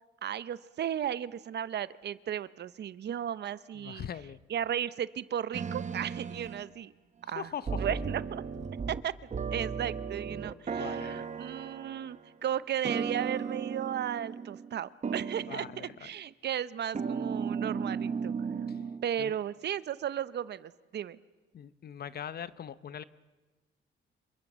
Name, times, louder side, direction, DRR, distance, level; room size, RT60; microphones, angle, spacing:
voice 1, 0.2-4.1 4.5-6.9 7.3-7.5 7.7-8.4 8.9-18.3 19.0-21.2, right 9 dB, 60° right, 16 dB, 0.8 m, -35 dB
voice 2, 3.7-4.4 7.2-7.9 10.7-11.2 15.5-16.0 18.7-18.8 19.2-19.4 21.5-23.0, left 8 dB, 50° left, 15 dB, 0.9 m, -41 dB
sound 1, 5.5-6.7 7.7-9.0 9.3-12.2 12.8-14.8 15.0-15.9 16.9-19.1, right 6 dB, 35° right, 1.2 m, -35 dB
27.5 x 23.5 x 7.4 m, 1.2 s
cardioid pair, 90°, 20 cm